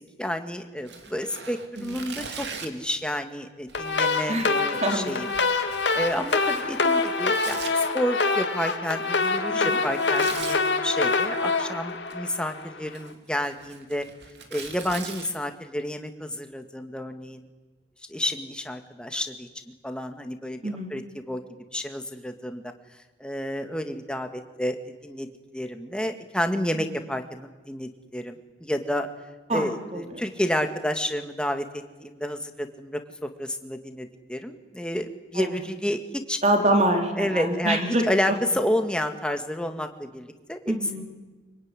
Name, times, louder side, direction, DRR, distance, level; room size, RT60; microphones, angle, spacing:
voice 1, 0.0-5.3 5.9-14.1 14.5-17.4 18.1-19.5 19.8-21.4 21.7-22.6 23.2-24.8 25.0-25.3 25.5-29.1 29.5-31.7 32.0-36.4 37.2-40.6 41.0-41.1, equal, 5° left, 6 dB, 1.8 m, -30 dB
Tearing, 0.8-2.9 3.7-7.7 9.8-10.6 11.9-12.4 12.8-15.3, right 5 dB, 65° right, 2.9 m, -41 dB
sound 1, 3.7-12.8, left 3 dB, 80° left, 2.2 m, -25 dB
voice 2, 4.8-5.1 9.5-9.8 20.6-20.9 29.5-30.2 35.4-35.5 36.4-38.4 40.7-41.0, right 1 dB, 35° right, 4 dB, 3.6 m, -25 dB
24.5 x 23.5 x 9.8 m, 1.2 s
head